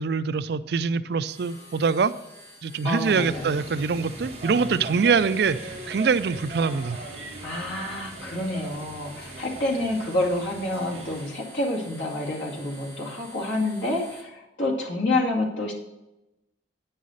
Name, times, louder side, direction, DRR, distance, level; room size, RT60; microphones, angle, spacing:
voice 1, 0.0-2.1 2.6-7.0, right 5 dB, 55° right, 14 dB, 0.4 m, -24 dB
sound 1, 1.3-14.2, equal, 15° left, 1.9 m, -48 dB
voice 2, 2.8-3.5 7.4-15.7, left 2 dB, 80° left, -2 dB, 2.3 m, -28 dB
sound 2, 3.0-11.3, right 2 dB, 35° right, 1.4 m, -40 dB
9.3 x 5.6 x 6.4 m, 0.95 s
head